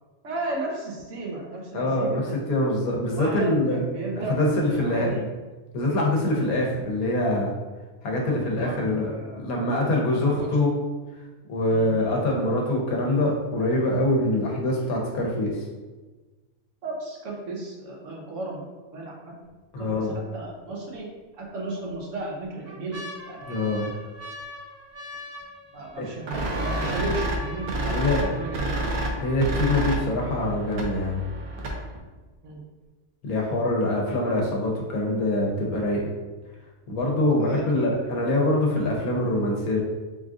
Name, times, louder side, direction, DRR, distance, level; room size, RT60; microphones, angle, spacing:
voice 1, 0.2-2.4 3.1-4.4 4.8-5.3 8.2-9.8 10.2-10.5 11.7-12.1 16.8-18.6 18.9-19.1 19.8-20.1 20.3-21.1 21.4-23.9 25.7-28.6 32.4-32.6 37.4-37.9, right 2 dB, 60° right, -2 dB, 1.0 m, -34 dB
voice 2, 1.7-3.8 4.3-5.1 5.7-7.5 8.0-10.7 11.5-15.6 19.7-20.2 23.5-23.9 26.0-26.1 27.9-28.3 29.2-31.2 33.2-36.0 36.9-39.8, left 1 dB, 80° left, -1 dB, 1.3 m, -24 dB
sound 1, 19.4-19.9 20.4-20.5 21.4-21.9 22.4-30.4 31.1-31.2 31.3-31.8 32.3-32.4, equal, 15° right, 0.6 m, -42 dB
sound 2, 26.3-32.0, right 1 dB, 85° right, 1.2 m, -29 dB
3.9 x 2.4 x 3.7 m, 1.3 s
omnidirectional pair, 1.5 m